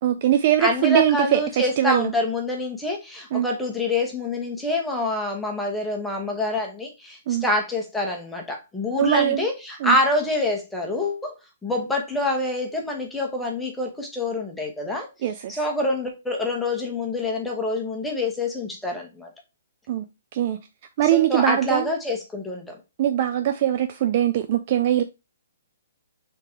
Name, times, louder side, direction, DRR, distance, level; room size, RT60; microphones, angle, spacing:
voice 1, 0.0-2.1 3.3-3.5 7.3-7.4 9.0-9.5 9.8-10.0 15.2-15.6 19.9-20.0 20.3-20.6 21.0-21.9 23.0-25.0, right 11 dB, 45° right, 0.4 m, -21 dB
voice 2, 0.6-11.3 11.6-15.1 15.5-19.3 21.1-22.8, left 2 dB, 5° left, 1.0 m, -26 dB
3.6 x 2.9 x 4.4 m
hypercardioid pair, 140°, 0 cm